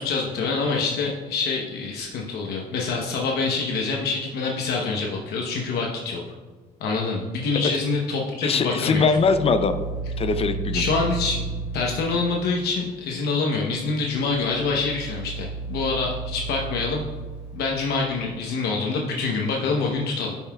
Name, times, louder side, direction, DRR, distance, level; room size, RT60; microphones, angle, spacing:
voice 1, 0.0-6.2 6.8-9.1 10.7-11.4 11.7-17.0 17.5-20.3, left 4 dB, 75° left, -1 dB, 1.0 m, -26 dB
voice 2, 8.4-9.8 10.2-10.8, left 4 dB, 35° left, 10 dB, 0.5 m, -21 dB
sound 1, 8.9-12.6 13.9-18.3, right 3 dB, 35° right, 2.3 m, -33 dB
12.0 x 5.5 x 2.3 m, 1.4 s
cardioid pair, 110°, 17 cm